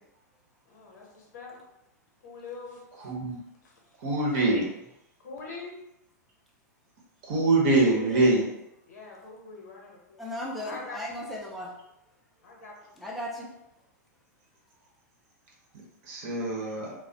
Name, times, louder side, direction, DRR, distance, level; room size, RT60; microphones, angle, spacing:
voice 1, 0.7-1.6 2.2-2.9 5.2-5.8 8.9-10.2 10.6-11.0 12.4-12.7, left 3 dB, 70° left, -2 dB, 0.8 m, -43 dB
voice 2, 3.0-3.4 4.0-4.7 7.2-8.4 16.0-16.9, right 2 dB, 50° right, -2 dB, 0.8 m, -24 dB
voice 3, 7.9-8.2 10.2-11.8 13.0-13.5, left 1 dB, ahead, -5 dB, 0.6 m, -36 dB
2.2 x 2.0 x 2.7 m, 0.88 s
hypercardioid pair, 105°, 10 cm